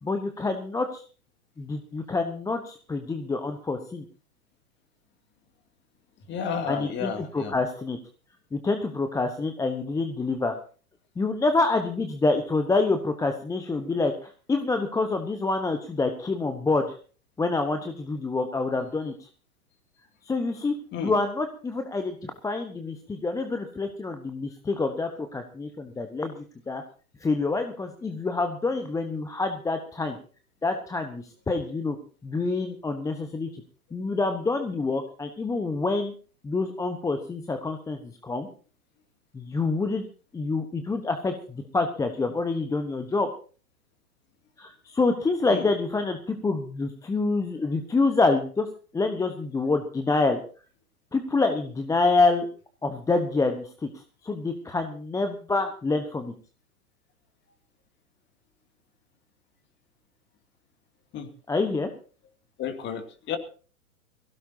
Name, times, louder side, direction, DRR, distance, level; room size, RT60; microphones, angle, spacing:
voice 1, 0.0-1.0 1.6-4.0 6.7-8.0 8.5-10.5 11.2-17.0 17.4-19.3 20.2-26.8 27.2-30.2 30.6-32.0 32.2-33.6 33.9-36.1 36.4-38.5 39.3-40.0 40.3-43.3 44.6-48.7 48.9-50.4 51.1-52.5 52.8-53.9 54.2-56.3 61.5-61.9, left 3 dB, 5° left, 7 dB, 1.0 m, -27 dB
voice 2, 6.3-7.6 20.9-21.1 45.5-45.7 61.1-61.3 62.6-63.4, left 7 dB, 25° left, 7 dB, 2.5 m, -32 dB
23.0 x 16.5 x 2.8 m, 0.39 s
figure-of-eight pair, 105°, 44 cm